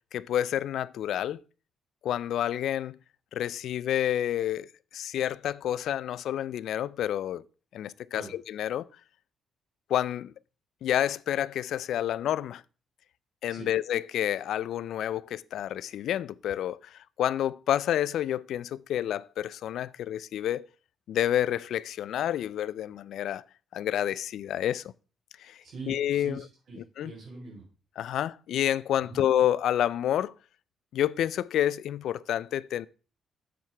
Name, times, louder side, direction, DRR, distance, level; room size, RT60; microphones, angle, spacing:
voice 1, 0.1-1.4 2.0-3.0 3.3-4.7 4.9-7.4 7.7-8.9 9.9-10.3 10.8-12.6 13.4-20.7 21.1-23.4 23.7-24.8 25.4-26.4 27.0-27.1 28.0-30.3 30.9-32.9, left 11 dB, 75° left, 0.3 m, -29 dB
voice 2, 25.6-27.7 29.0-29.2, right 3 dB, 65° right, 3.3 m, -43 dB
7.6 x 7.1 x 3.3 m
cardioid pair, 125°, 0 cm